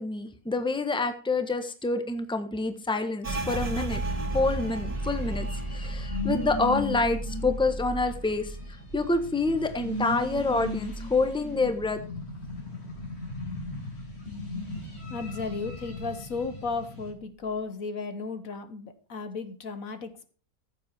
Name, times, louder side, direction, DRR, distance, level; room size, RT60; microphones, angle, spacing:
voice 1, 0.0-4.0 4.3-5.5 5.7-8.5 8.9-12.0, left 3 dB, 5° left, 8 dB, 1.3 m, -27 dB
sound 1, 3.2-12.6 12.9-14.2 14.5-15.0 15.4-16.0, right 2 dB, 25° right, 1.6 m, -36 dB
sound 2, 3.3-17.1, left 1 dB, 45° left, 4.1 m, -38 dB
voice 2, 15.1-20.3, left 4 dB, 65° left, 10 dB, 1.6 m, -34 dB
14.5 x 7.7 x 4.4 m, 0.38 s
omnidirectional pair, 1.6 m